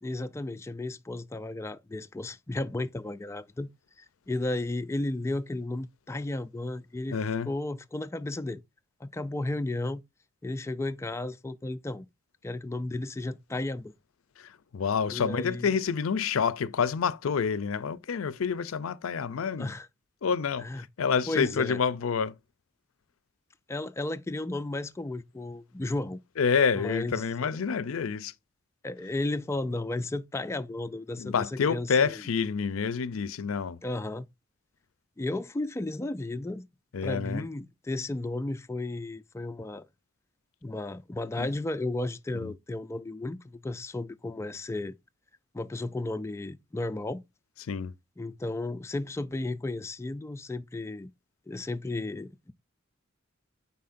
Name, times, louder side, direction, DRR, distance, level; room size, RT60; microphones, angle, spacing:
voice 1, 0.0-3.7 4.3-7.2 7.5-8.6 9.0-10.0 10.4-12.1 12.4-13.9 15.1-15.7 19.6-19.9 20.6-21.8 23.7-26.2 26.7-27.5 28.8-32.2 33.8-34.3 35.2-36.7 37.0-39.9 40.6-44.9 45.5-47.2 48.2-51.1 51.5-52.5, left 2 dB, 15° left, 0.3 m, -34 dB
voice 2, 7.1-7.5 14.4-19.7 20.2-22.3 26.4-28.3 31.2-33.8 36.9-37.4 41.4-41.5 42.3-42.5 47.7-47.9, left 6 dB, 90° left, 0.5 m, -28 dB
9.3 x 4.1 x 2.5 m
head